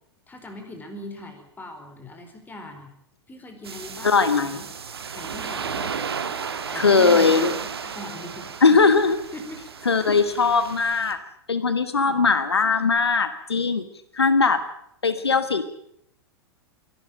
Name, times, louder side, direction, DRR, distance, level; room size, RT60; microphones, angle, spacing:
voice 1, 0.3-2.9 3.3-4.7 5.1-6.0 6.7-7.5 7.8-8.9 9.3-9.9 10.5-10.6 12.0-12.3, left 2 dB, 15° left, 6 dB, 4.4 m, -40 dB
sound 1, 3.6-11.1, right 6 dB, 70° right, 1.7 m, -33 dB
voice 2, 4.0-4.6 6.8-7.5 8.6-9.2 9.9-11.2 11.5-13.9 14.1-14.6 15.0-15.6, left 4 dB, 75° left, 11 dB, 1.3 m, -19 dB
24.0 x 12.5 x 9.0 m, 0.73 s
figure-of-eight pair, 95°, 13 cm